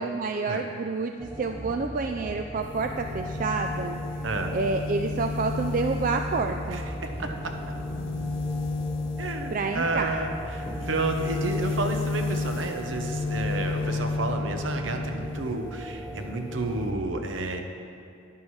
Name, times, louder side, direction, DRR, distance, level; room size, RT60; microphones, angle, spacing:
voice 1, 0.0-4.0 4.5-6.8 9.5-10.1, right 4 dB, 40° right, 5 dB, 0.3 m, -28 dB
sound 1, 1.2-17.0, equal, 10° right, 0.7 m, -38 dB
sound 2, 2.6-15.6 15.9-16.9, left 3 dB, 65° left, 0.5 m, -33 dB
voice 2, 4.2-4.6 6.7-7.7 9.2-17.6, right 2 dB, 65° right, 4 dB, 0.9 m, -31 dB
sound 3, 7.0-8.2 9.7-10.3 10.6-11.2 13.2-13.3 13.7-15.3 16.2-16.5, equal, 30° left, 1.1 m, -44 dB
11.5 x 10.5 x 3.2 m, 2.4 s
head